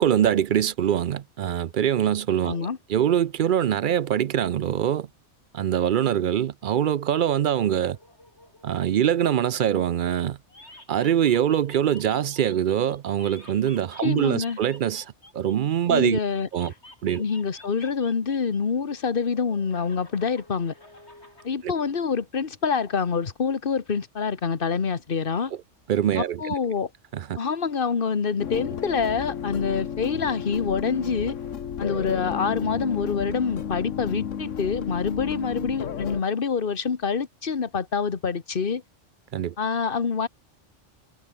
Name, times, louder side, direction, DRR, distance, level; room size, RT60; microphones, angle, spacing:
voice 1, 0.0-5.1 5.5-8.0 8.6-10.4 10.9-15.1 15.3-16.2 16.5-16.7 17.0-17.2 21.6-21.7 25.9-26.4 27.1-27.4 39.3-39.5, right 10 dB, 60° right, 0.6 m, -23 dB
voice 2, 2.4-2.8 14.0-14.6 15.9-16.5 17.2-20.7 21.4-25.5 26.1-26.9 27.4-31.4 31.8-38.8 39.6-40.3, left 5 dB, 45° left, 1.5 m, -26 dB
sound 1, 7.8-10.2 10.5-16.0 16.5-18.6 18.9-21.5, left 1 dB, 60° left, 7.2 m, -50 dB
sound 2, 28.4-36.2, left 8 dB, 85° left, 1.4 m, -32 dB
omnidirectional pair, 1.3 m